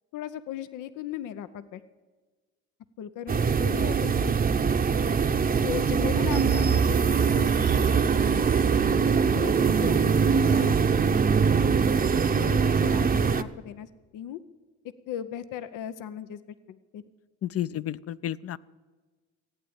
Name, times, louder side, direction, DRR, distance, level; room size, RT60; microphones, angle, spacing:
voice 1, 0.1-1.8 3.0-4.7 5.6-8.5 9.3-11.2 12.3-13.9 14.1-14.4 15.1-16.4 16.7-17.0, left 10 dB, 90° left, 13 dB, 0.7 m, -37 dB
sound 1, 3.3-13.4, right 6 dB, 30° right, 0.7 m, -22 dB
voice 2, 17.4-18.6, left 12 dB, 50° left, 18 dB, 0.5 m, -31 dB
15.5 x 9.1 x 8.7 m, 1.4 s
cardioid pair, 90°, 30 cm